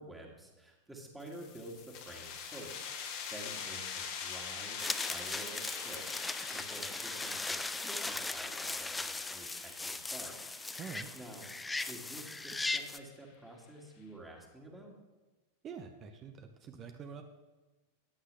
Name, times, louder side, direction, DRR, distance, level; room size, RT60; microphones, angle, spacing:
voice 1, 0.0-10.6 11.1-11.5 11.9-14.9, right 1 dB, 5° right, -1 dB, 2.3 m, -50 dB
sound 1, 1.2-12.5, left 7 dB, 45° left, 1.6 m, -45 dB
sound 2, 4.8-13.0, left 3 dB, 10° left, 0.4 m, -38 dB
voice 2, 10.8-11.1 15.6-17.2, right 6 dB, 30° right, 6 dB, 0.9 m, -46 dB
14.0 x 9.6 x 3.5 m, 1.2 s
figure-of-eight pair, 90°, 0 cm